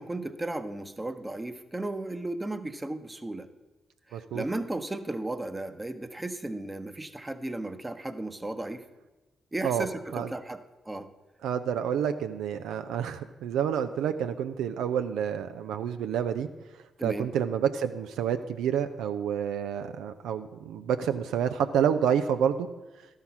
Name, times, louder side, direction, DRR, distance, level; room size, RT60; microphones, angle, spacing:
voice 1, 0.0-3.5 4.1-8.8 9.5-11.1 17.0-17.3, right 2 dB, 20° right, 10 dB, 0.9 m, -35 dB
voice 2, 4.1-4.4 9.6-9.9 10.1-10.3 11.4-16.5 17.0-22.7, right 8 dB, 80° right, 9 dB, 0.4 m, -28 dB
12.0 x 5.7 x 5.9 m, 1.1 s
hypercardioid pair, 45°, 0 cm